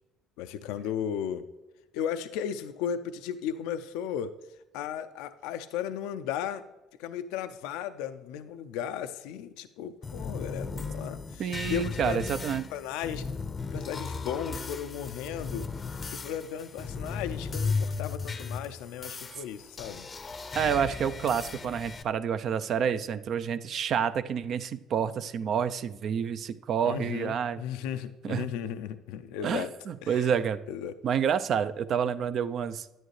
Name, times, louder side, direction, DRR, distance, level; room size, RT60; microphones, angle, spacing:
voice 1, 0.4-1.4 1.9-4.3 4.7-6.6 7.0-12.2 12.7-13.2 13.7-15.6 16.1-20.1 26.8-29.7 30.0-30.3 30.7-30.9, left 9 dB, 85° left, 11 dB, 0.4 m, -35 dB
sound 1, 10.0-22.0, left 4 dB, 30° left, 0.6 m, -36 dB
voice 2, 11.4-12.7 20.5-27.6 28.2-28.5 29.4-30.6 31.0-32.9, right 8 dB, 55° right, 12 dB, 0.5 m, -29 dB
10.5 x 9.1 x 3.2 m, 1.1 s
supercardioid pair, 90°, 0 cm